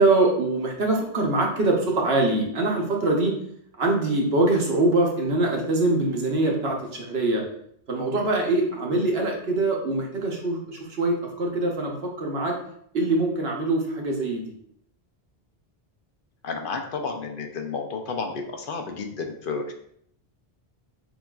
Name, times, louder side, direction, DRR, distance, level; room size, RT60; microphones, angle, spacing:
voice 1, 0.0-3.3 3.8-7.4 7.9-12.6 12.9-14.5, right 2 dB, 75° right, 0 dB, 1.1 m, -23 dB
voice 2, 16.4-19.7, left 4 dB, 65° left, 3 dB, 0.7 m, -31 dB
6.8 x 2.4 x 2.3 m, 0.68 s
omnidirectional pair, 1.0 m